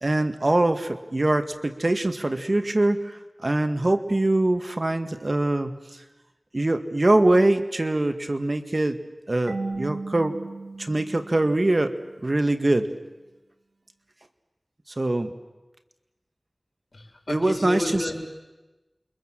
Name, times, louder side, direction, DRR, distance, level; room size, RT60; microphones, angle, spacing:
voice 1, 0.0-5.7 6.5-9.0 9.3-10.4 10.8-11.9 12.2-12.9 15.0-15.3 17.3-18.1, right 2 dB, 50° right, 8 dB, 1.8 m, -23 dB
Marimba xylophone / Wood, 9.5-12.2, right 3 dB, 85° right, 2.4 m, -36 dB
voice 2, 16.9-18.1, left 1 dB, 65° left, 2 dB, 6.2 m, -31 dB
28.5 x 24.0 x 7.6 m, 1.1 s
wide cardioid pair, 40°, 0 cm